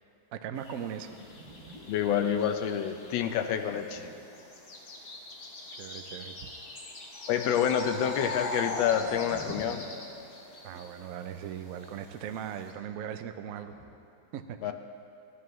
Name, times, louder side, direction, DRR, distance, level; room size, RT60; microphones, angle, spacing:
voice 1, 0.3-1.1 5.8-6.5 10.6-13.7 14.3-14.7, right 9 dB, 80° right, 8 dB, 0.7 m, -39 dB
sound 1, 0.5-12.7, left 2 dB, 45° left, 1.2 m, -48 dB
sound 2, 1.0-4.9 7.4-7.6 7.9-10.9 13.7-13.9, equal, 30° right, 3.1 m, -50 dB
voice 2, 1.9-4.1 7.3-9.8 14.6-14.7, left 9 dB, 85° left, 7 dB, 1.4 m, -28 dB
sound 3, 7.1-10.7, left 2 dB, 60° left, 1.4 m, -38 dB
15.0 x 11.0 x 3.1 m, 2.7 s
omnidirectional pair, 2.1 m